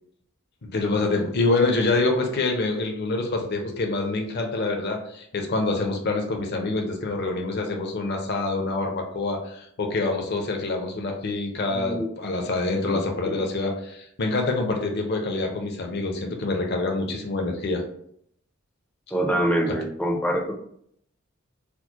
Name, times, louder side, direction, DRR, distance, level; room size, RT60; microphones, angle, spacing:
voice 1, 0.6-17.8 19.7-19.8, left 3 dB, 55° left, 2 dB, 0.6 m, -26 dB
voice 2, 11.7-12.1 12.9-13.4 19.1-20.5, right 1 dB, 5° left, 2 dB, 0.5 m, -25 dB
4.4 x 2.1 x 2.8 m, 0.70 s
head